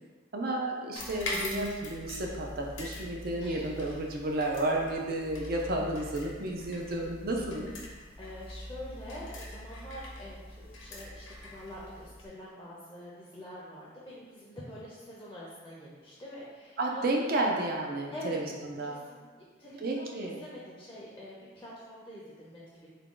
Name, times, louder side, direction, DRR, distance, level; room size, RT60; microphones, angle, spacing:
voice 1, 0.3-7.7 16.8-19.0 19.8-20.4, right 2 dB, 50° right, 0 dB, 0.5 m, -32 dB
sound 1, 1.0-12.3, left 1 dB, 85° left, 0.7 m, -43 dB
voice 2, 3.4-3.7 8.2-17.3 18.1-18.3 18.8-22.9, left 1 dB, 15° left, -6 dB, 0.5 m, -46 dB
3.6 x 2.2 x 3.7 m, 1.4 s
head